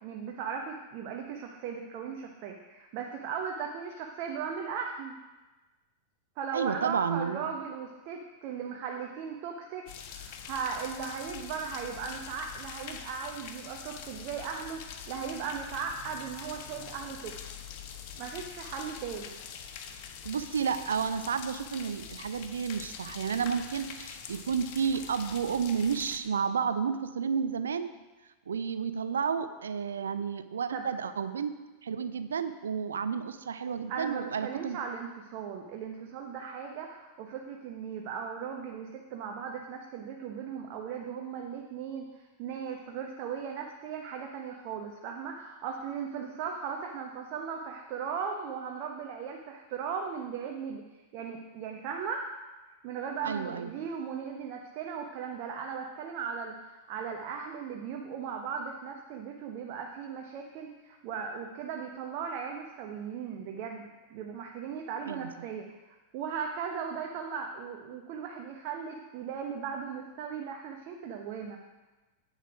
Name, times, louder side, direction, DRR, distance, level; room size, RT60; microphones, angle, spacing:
voice 1, 0.0-5.1 6.4-17.4 18.2-19.3 30.7-30.9 33.9-50.8 51.1-52.3 52.8-65.7 66.1-71.6, right 6 dB, 45° right, 2 dB, 1.1 m, -37 dB
voice 2, 6.5-7.5 20.2-27.9 28.5-31.5 31.8-34.8 53.2-53.7 65.1-65.3, right 6 dB, 70° right, 11 dB, 0.6 m, -31 dB
sound 1, 9.9-26.2, left 8 dB, 45° left, 1.0 m, -44 dB
10.0 x 8.3 x 4.9 m, 1.2 s
figure-of-eight pair, 90°, 0 cm